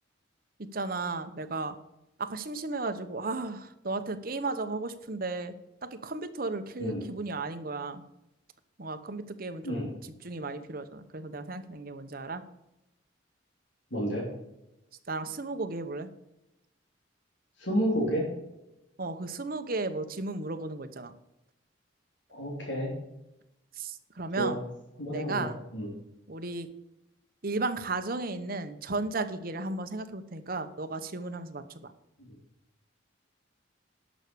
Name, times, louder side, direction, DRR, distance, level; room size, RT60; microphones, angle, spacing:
voice 1, 0.7-1.8 2.2-5.5 5.9-8.0 8.8-9.9 10.2-12.4 15.1-16.1 19.0-21.1 23.8-24.6 25.1-25.6 26.3-26.7 27.4-31.9, right 3 dB, 50° right, 9 dB, 1.0 m, -34 dB
voice 2, 13.9-14.3 17.6-18.3 22.3-22.9 24.4-24.6 25.0-25.9, equal, 80° left, -2 dB, 2.9 m, -30 dB
11.5 x 6.3 x 6.8 m, 0.89 s
head